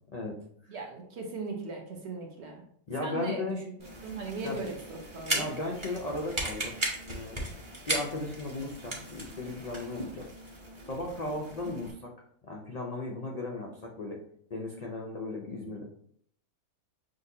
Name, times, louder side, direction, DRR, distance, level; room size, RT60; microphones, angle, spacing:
voice 1, 0.7-2.6 3.0-3.6 4.0-5.5, right 3 dB, 50° right, 2 dB, 1.1 m, -38 dB
voice 2, 2.9-3.6 4.4-4.6 5.3-6.8 7.1-7.4 7.9-10.3 10.9-12.1 12.4-14.2 14.5-15.8, left 2 dB, 90° left, -1 dB, 0.3 m, -36 dB
sound 1, 3.8-11.9, right 1 dB, 25° right, 0.9 m, -37 dB
6.3 x 2.6 x 2.8 m, 0.64 s
omnidirectional pair, 1.6 m